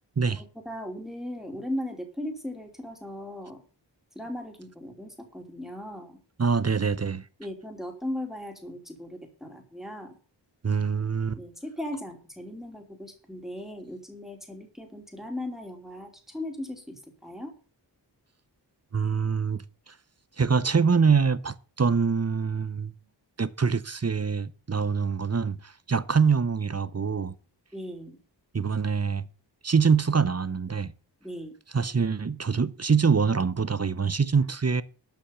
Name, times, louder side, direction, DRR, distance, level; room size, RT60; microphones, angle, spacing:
voice 1, 0.3-3.6 4.1-6.2 7.4-10.2 11.3-17.5 27.7-28.2 31.2-31.5, left 1 dB, ahead, 3.0 m, -37 dB
voice 2, 6.4-7.2 10.6-11.4 18.9-19.9 20.4-22.9 23.4-27.4 28.5-29.3 29.6-30.9 31.7-34.8, right 5 dB, 35° right, 0.7 m, -25 dB
12.5 x 5.9 x 7.1 m
wide cardioid pair, 85°, 45 cm